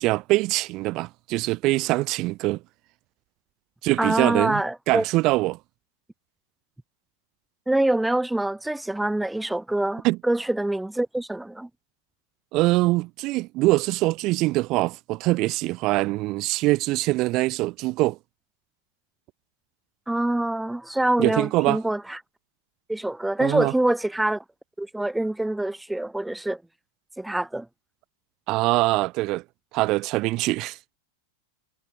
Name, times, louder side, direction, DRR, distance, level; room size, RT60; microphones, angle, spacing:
voice 1, 0.0-2.6 3.8-5.6 10.0-10.2 12.5-18.2 21.2-21.8 23.4-23.7 28.5-29.4 29.7-30.8, right 20 dB, 40° right, 1.3 m, -23 dB
voice 2, 4.0-5.0 7.7-11.7 20.1-22.2 22.9-24.4 24.8-26.6 27.2-27.7, right 1 dB, 5° right, 1.1 m, -25 dB
figure-of-eight pair, 90°, 0 cm